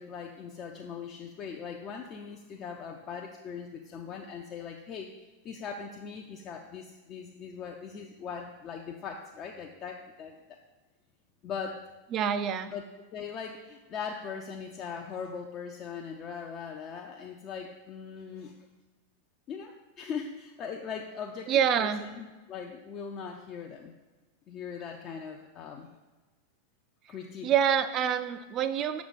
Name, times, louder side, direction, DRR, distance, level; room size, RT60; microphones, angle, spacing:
voice 1, 0.0-10.6 11.4-11.8 12.7-18.5 19.5-23.9 24.5-25.9 27.1-27.5, left 6 dB, 30° left, 2 dB, 0.4 m, -40 dB
voice 2, 12.1-12.7 21.5-22.0 27.4-29.0, right 8 dB, 35° right, 11 dB, 0.4 m, -26 dB
6.3 x 4.7 x 3.9 m, 1.2 s
figure-of-eight pair, 90°, 0 cm